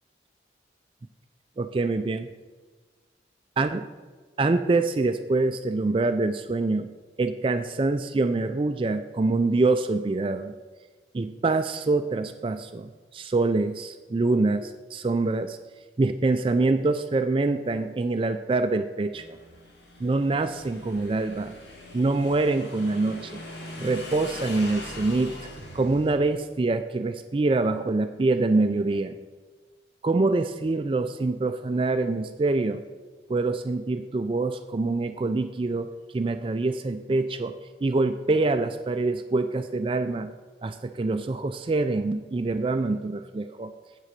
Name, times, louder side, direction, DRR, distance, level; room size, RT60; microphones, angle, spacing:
voice 1, 1.6-2.3 3.6-3.8 4.4-6.9 7.2-10.5 11.1-15.6 16.0-19.4 20.0-21.6 21.9-23.4 23.8-25.4 25.7-29.1 30.0-32.8 33.3-35.9 36.1-37.5 37.8-40.3 40.6-43.7, right 3 dB, 30° right, 9 dB, 0.3 m, -25 dB
Motorcycle / Engine, 19.1-26.1, left 1 dB, 70° left, 2.0 m, -41 dB
8.4 x 7.6 x 6.6 m, 1.4 s
head